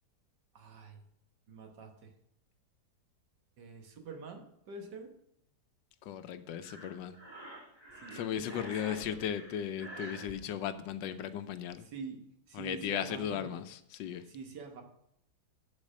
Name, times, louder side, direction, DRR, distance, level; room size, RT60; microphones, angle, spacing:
voice 1, 0.6-1.0 1.5-2.1 3.6-5.1 8.0-9.2 11.9-12.2 12.5-13.5 14.2-14.8, right 4 dB, 70° right, 4 dB, 1.8 m, -45 dB
voice 2, 6.0-7.2 8.1-11.9 12.5-14.3, left 9 dB, 80° left, 11 dB, 1.2 m, -36 dB
Breathing, 6.6-10.3, right 1 dB, 15° right, 2.0 m, -48 dB
10.5 x 4.3 x 6.3 m, 0.76 s
omnidirectional pair, 2.0 m